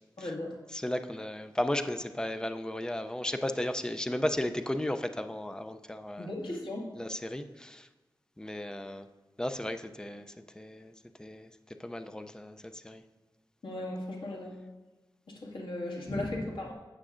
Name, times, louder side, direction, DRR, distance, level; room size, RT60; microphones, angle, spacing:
voice 1, 0.2-0.6 6.2-6.9 13.6-14.6 15.3-16.7, left 1 dB, 80° left, -3 dB, 2.0 m, -37 dB
voice 2, 0.7-6.3 7.0-7.9 8.4-9.1 9.4-10.9 11.2-11.5 11.8-13.0 16.1-16.5, left 1 dB, 10° left, 8 dB, 0.4 m, -35 dB
13.0 x 8.6 x 2.5 m, 1.2 s
wide cardioid pair, 115°, 8 cm